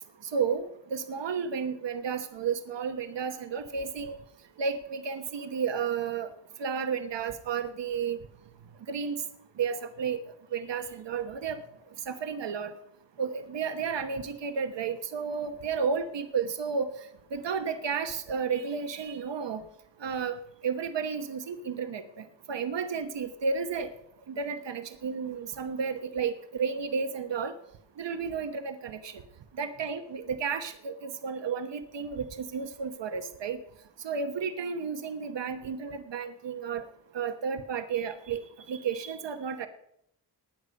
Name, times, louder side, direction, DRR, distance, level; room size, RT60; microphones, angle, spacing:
voice 1, 0.2-4.2 4.6-6.3 6.6-8.2 8.9-9.2 9.6-10.2 10.5-11.6 12.1-12.7 13.2-16.9 17.3-19.6 20.0-23.9 24.3-27.5 28.0-29.2 29.6-33.6 34.0-36.8 37.1-38.4 38.7-39.7, right 6 dB, 90° right, 8 dB, 1.1 m, -32 dB
18.5 x 9.9 x 5.3 m, 0.76 s
wide cardioid pair, 160°, 42 cm